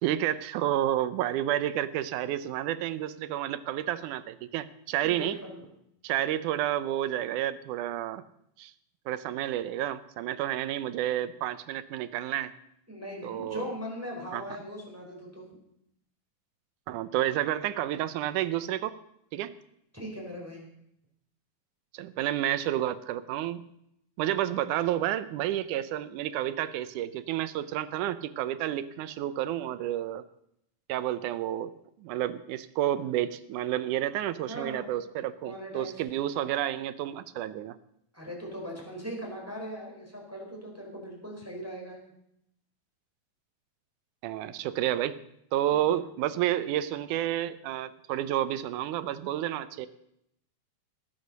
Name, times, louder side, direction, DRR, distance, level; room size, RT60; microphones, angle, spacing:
voice 1, 0.0-5.4 6.0-8.2 8.6-8.7 9.1-12.5 13.2-13.6 14.3-14.4 16.9-19.0 19.3-19.5 21.9-23.6 24.2-30.2 30.9-31.7 32.0-37.8 44.2-45.2 45.5-49.9, right 12 dB, 75° right, 14 dB, 2.0 m, -30 dB
voice 2, 5.0-5.7 12.9-15.4 19.9-20.7 34.5-34.9 35.4-36.0 38.1-42.1, equal, 5° right, -2 dB, 4.1 m, -39 dB
19.5 x 8.0 x 6.5 m, 0.75 s
omnidirectional pair, 4.0 m